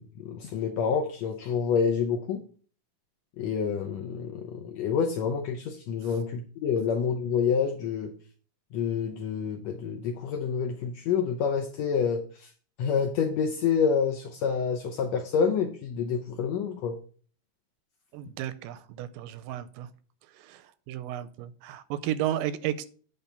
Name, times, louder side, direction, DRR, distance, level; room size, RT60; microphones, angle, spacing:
voice 1, 0.0-2.4 3.4-8.1 8.7-12.5 12.8-17.0, left 6 dB, 75° left, 3 dB, 1.6 m, -28 dB
voice 2, 18.1-19.9 20.4-22.9, right 12 dB, 90° right, 14 dB, 2.2 m, -33 dB
8.7 x 3.5 x 6.6 m, 0.43 s
omnidirectional pair, 3.8 m